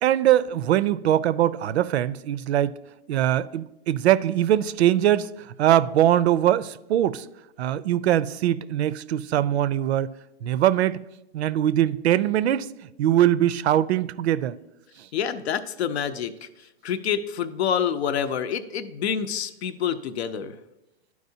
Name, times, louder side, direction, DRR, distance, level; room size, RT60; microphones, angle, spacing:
voice 1, 0.0-2.7 3.1-5.3 5.6-7.3 7.6-10.1 10.4-11.0 11.3-12.7 13.0-14.6 15.0-15.1, right 12 dB, 85° right, 0.5 m, -22 dB
voice 2, 15.1-16.5 16.8-20.6, left 8 dB, 80° left, 0.7 m, -27 dB
12.0 x 4.7 x 2.7 m
hypercardioid pair, 150°, 32 cm